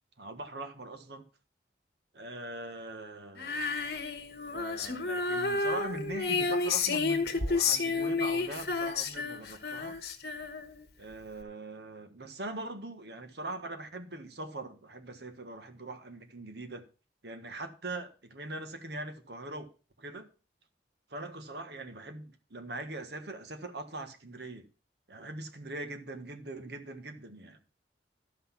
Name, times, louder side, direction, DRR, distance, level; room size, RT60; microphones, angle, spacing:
voice 1, 0.2-1.3 2.1-3.7 4.5-10.0 11.0-16.9 17.2-19.7 20.0-20.3 21.1-24.7 25.1-27.6, right 2 dB, 70° right, 1.5 m, -41 dB
Female singing, 3.4-10.8, left 4 dB, 60° left, 1.4 m, -31 dB
12.0 x 6.0 x 5.8 m
head